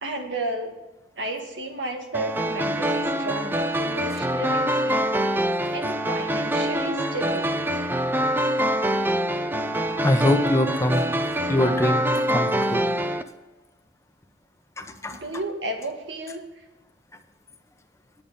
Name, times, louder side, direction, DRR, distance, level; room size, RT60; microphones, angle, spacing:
voice 1, 0.0-0.8 1.2-5.1 5.7-7.6 15.1-16.4, right 2 dB, 85° right, 4 dB, 1.7 m, -32 dB
sound 1, 2.1-13.2, equal, 10° right, 0.5 m, -25 dB
voice 2, 10.0-11.0 11.5-12.8 14.8-15.2, left 1 dB, 15° left, 6 dB, 0.9 m, -23 dB
9.8 x 9.0 x 5.4 m, 1.1 s
head